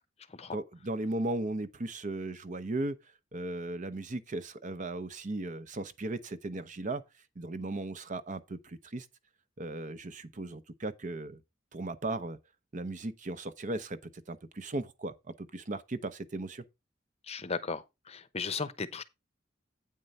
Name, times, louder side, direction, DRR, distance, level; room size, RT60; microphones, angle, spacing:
voice 1, 0.5-3.0 3.3-7.0 7.4-9.1 9.6-11.4 11.7-12.4 12.7-16.6, right 2 dB, 40° right, 0.7 m, -36 dB
voice 2, 17.3-19.0, left 5 dB, 35° left, 0.8 m, -36 dB
8.8 x 4.6 x 5.3 m
head